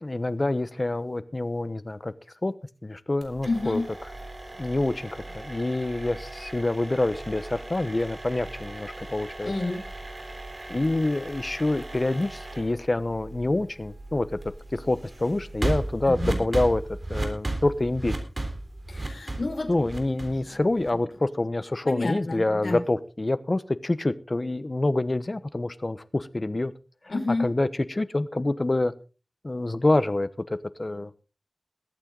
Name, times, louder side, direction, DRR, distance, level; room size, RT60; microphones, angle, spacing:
voice 1, 0.0-2.1 2.4-2.5 2.8-3.8 4.6-9.5 10.7-14.3 14.7-16.8 17.1-18.1 19.7-26.7 27.4-28.9 29.4-31.1, left 2 dB, 40° left, 15 dB, 1.0 m, -26 dB
sound 1, 3.2-21.1, right 2 dB, 45° right, 3.6 m, -36 dB
voice 2, 3.4-3.8 9.4-9.8 16.0-16.4 18.9-19.7 20.3-20.6 21.8-22.8 27.1-27.5, left 2 dB, 80° left, 3 dB, 5.0 m, -29 dB
21.0 x 9.0 x 3.9 m, 0.34 s
wide cardioid pair, 75°, 0 cm